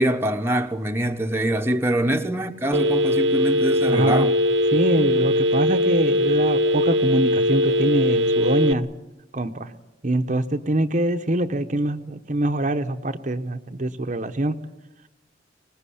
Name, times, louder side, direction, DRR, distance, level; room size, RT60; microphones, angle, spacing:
voice 1, 0.0-4.3, right 1 dB, 15° right, 1.0 m, -24 dB
Telephone, 2.7-8.7, equal, 75° right, 1.0 m, -20 dB
voice 2, 3.9-4.3 4.7-8.9 9.3-9.7 10.0-14.6, right 1 dB, 40° right, 0.9 m, -24 dB
24.5 x 20.0 x 8.6 m
head